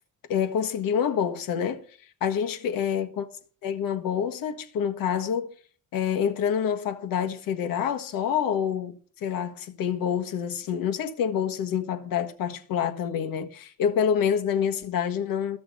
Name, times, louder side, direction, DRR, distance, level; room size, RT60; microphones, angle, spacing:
voice 1, 0.3-1.8 2.2-3.3 3.6-5.5 5.9-15.6, left 8 dB, 75° left, 1.5 m, -27 dB
14.0 x 6.2 x 7.8 m
cardioid pair, 160°, 34 cm